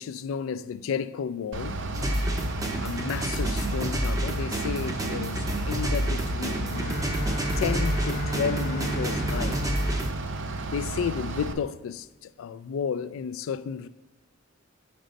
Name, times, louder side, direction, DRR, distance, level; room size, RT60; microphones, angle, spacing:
voice 1, 0.0-1.8 2.8-7.0 7.6-9.6 10.7-13.9, left 6 dB, 75° left, 0.3 m, -32 dB
Bus / Idling, 1.5-11.5, right 2 dB, 65° right, 0.6 m, -34 dB
sound 1, 1.9-10.1, equal, 15° right, 0.6 m, -29 dB
Bowed string instrument, 6.6-11.4, equal, 40° left, 0.7 m, -35 dB
6.2 x 5.2 x 4.0 m
head